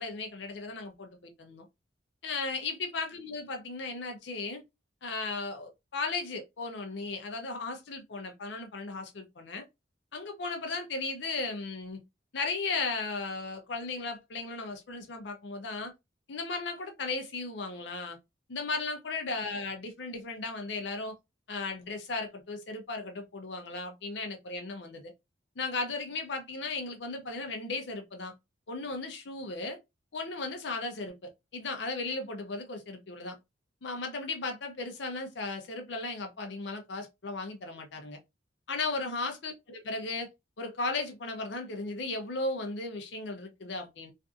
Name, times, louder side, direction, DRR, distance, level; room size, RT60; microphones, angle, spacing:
voice 1, 0.0-1.6 2.2-4.6 5.0-9.6 10.1-12.0 12.3-15.9 16.3-18.2 18.5-21.1 21.5-25.1 25.6-28.3 28.7-29.8 30.1-33.4 33.8-38.2 38.7-40.3 40.6-44.1, left 3 dB, 70° left, 0.6 m, -36 dB
2.5 x 2.5 x 2.3 m
head